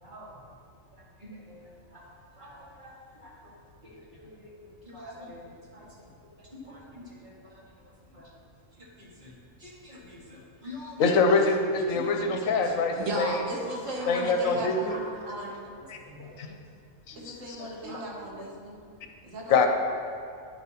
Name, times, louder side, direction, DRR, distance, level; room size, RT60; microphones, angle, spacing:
voice 1, 0.0-0.3 1.5-1.6 2.4-2.5 2.8-2.9 3.2-3.3 3.8-3.9 4.2-4.5 4.9-5.4 5.7-5.8 6.6-7.5 8.1-8.2 9.2-9.3 9.6-11.1 11.9-12.1 12.4-12.5 13.7-14.1 14.9-15.5 16.1-16.2 17.9-18.0, left 1 dB, 35° right, -6 dB, 2.1 m, -44 dB
voice 2, 11.0-13.3 14.1-15.0 15.9-16.0 17.1-18.0 19.5-19.7, left 4 dB, 80° left, 4 dB, 1.1 m, -25 dB
voice 3, 12.6-15.6 17.2-18.7 19.2-19.7, right 1 dB, 65° right, -2 dB, 1.5 m, -36 dB
10.5 x 8.3 x 3.0 m, 2.5 s
omnidirectional pair, 1.4 m